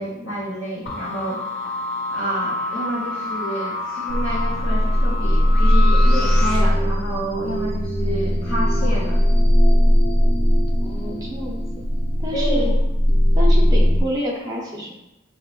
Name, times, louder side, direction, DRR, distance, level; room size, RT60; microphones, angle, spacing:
voice 1, 0.0-1.5 2.1-9.2 12.3-12.8, equal, 75° left, -9 dB, 0.9 m, -29 dB
sound 1, 0.9-6.6, left 2 dB, 60° left, 1.4 m, -28 dB
sound 2, 4.1-14.0, equal, 30° left, 0.7 m, -18 dB
voice 2, 10.8-11.6 12.2-12.7 13.3-14.9, left 1 dB, 20° right, -2 dB, 0.8 m, -28 dB
5.4 x 2.8 x 2.4 m, 0.89 s
head